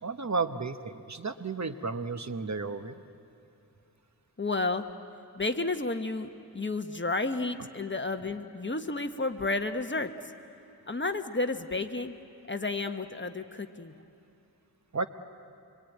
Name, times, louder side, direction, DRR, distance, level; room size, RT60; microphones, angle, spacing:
voice 1, 0.0-3.0 14.9-15.1, right 4 dB, 45° right, 9 dB, 1.0 m, -33 dB
voice 2, 4.4-4.9 5.4-10.1 10.9-12.1 12.5-13.9, left 3 dB, 30° left, 7 dB, 1.2 m, -31 dB
26.0 x 23.5 x 9.3 m, 2.9 s
wide cardioid pair, 90°, 39 cm